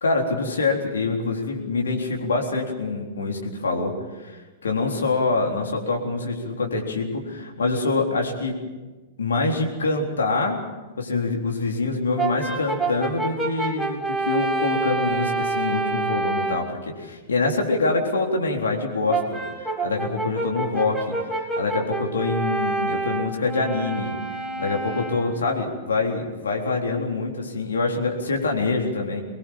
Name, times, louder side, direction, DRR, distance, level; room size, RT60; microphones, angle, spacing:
voice 1, 0.0-8.6 9.2-10.6 11.0-19.4 19.8-24.2 24.6-29.2, left 3 dB, 70° left, 1 dB, 3.8 m, -25 dB
Brass instrument, 12.2-16.7 19.1-25.4, right 3 dB, 5° right, 3.4 m, -28 dB
24.0 x 20.5 x 7.4 m, 1.2 s
figure-of-eight pair, 100°, 0 cm